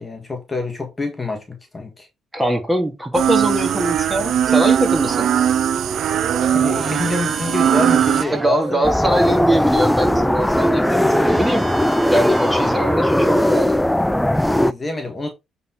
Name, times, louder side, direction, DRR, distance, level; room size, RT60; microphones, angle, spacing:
voice 1, 0.0-1.4 1.7-2.1 6.4-8.9 9.3-9.4 14.5-15.3, left 2 dB, 25° left, 1.7 m, -26 dB
voice 2, 2.3-5.3 8.3-11.7 12.1-13.8, equal, 10° right, 2.9 m, -22 dB
sound 1, 3.1-8.2, right 9 dB, 70° right, 0.3 m, -19 dB
sound 2, 4.5-13.7, right 3 dB, 25° right, 1.1 m, -31 dB
sound 3, 8.8-14.7, left 1 dB, 5° left, 0.4 m, -18 dB
8.1 x 4.2 x 4.3 m
cardioid pair, 90°, 0 cm